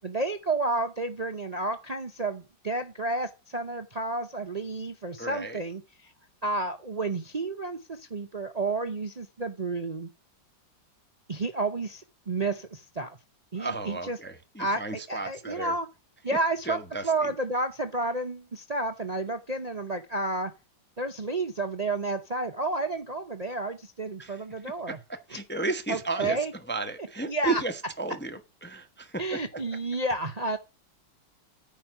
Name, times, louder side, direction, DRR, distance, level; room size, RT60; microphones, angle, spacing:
voice 1, 0.0-6.1 6.4-10.1 11.3-13.2 13.5-14.2 14.6-15.9 16.2-16.8 17.0-20.5 21.0-25.0 25.3-25.4 25.9-26.5 27.0-27.6 29.2-30.6, right 2 dB, 70° right, 0.3 m, -31 dB
voice 2, 5.2-5.6 13.5-15.7 16.7-17.3 24.2-24.4 24.9-26.4 26.7-29.4, right 3 dB, 10° left, 0.6 m, -34 dB
9.3 x 5.3 x 5.9 m
omnidirectional pair, 2.0 m